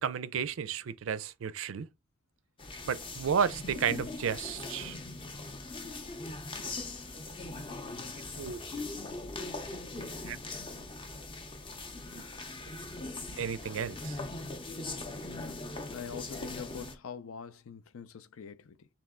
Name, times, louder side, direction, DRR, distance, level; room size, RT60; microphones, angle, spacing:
voice 1, 0.0-1.9 2.9-5.0 8.3-8.6 10.2-10.4 12.1-12.2 13.4-14.2, right 7 dB, 65° right, 0.4 m, -32 dB
sound 1, 2.6-17.0, left 2 dB, 25° left, 0.5 m, -41 dB
voice 2, 15.3-15.6 15.9-18.9, left 6 dB, 70° left, 0.4 m, -44 dB
3.2 x 2.8 x 3.6 m
head